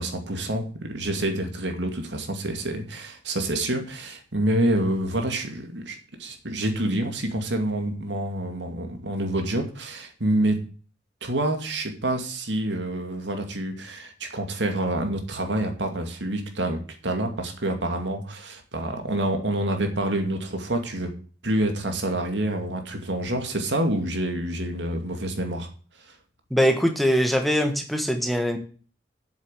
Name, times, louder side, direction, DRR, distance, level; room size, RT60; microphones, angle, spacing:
voice 1, 0.0-10.6 11.2-21.1 21.4-25.7, right 1 dB, 75° right, 5 dB, 2.3 m, -27 dB
voice 2, 26.5-28.6, equal, ahead, 5 dB, 1.4 m, -22 dB
7.9 x 7.3 x 8.2 m, 0.40 s
head